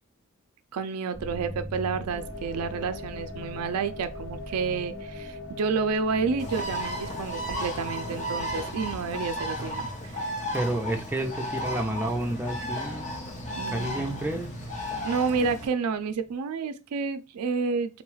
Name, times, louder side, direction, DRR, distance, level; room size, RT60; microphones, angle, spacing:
voice 1, 0.7-10.4 13.6-14.3 15.0-18.0, right 5 dB, 85° right, 0.4 m, -30 dB
sound 1, 1.1-16.3, left 1 dB, 15° left, 1.2 m, -44 dB
sound 2, 2.1-8.7, left 3 dB, 55° left, 0.4 m, -41 dB
Bird, 6.4-15.7, equal, 30° left, 0.8 m, -34 dB
voice 2, 10.5-13.2 13.7-14.5, right 1 dB, 10° right, 0.5 m, -30 dB
3.8 x 2.3 x 3.1 m
head